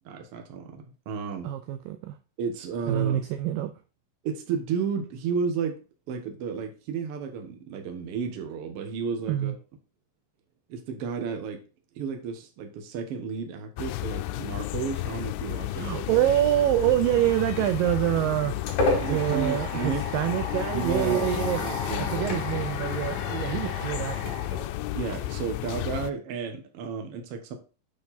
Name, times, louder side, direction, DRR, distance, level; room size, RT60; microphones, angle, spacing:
voice 1, 0.0-1.5 2.4-3.2 4.2-5.8 6.1-9.5 10.7-11.6 11.9-16.1 19.0-20.1 20.7-22.4 24.9-27.5, right 6 dB, 55° right, 1.6 m, -32 dB
voice 2, 1.4-2.2 2.9-3.7 9.3-9.5 15.8-18.7 19.1-21.6 22.0-24.4, right 13 dB, 80° right, 2.0 m, -26 dB
sound 1, 13.8-26.1, left 16 dB, 80° left, 2.4 m, -33 dB
sound 2, 18.2-25.3, left 2 dB, 50° left, 3.1 m, -32 dB
7.6 x 5.9 x 4.2 m
omnidirectional pair, 4.5 m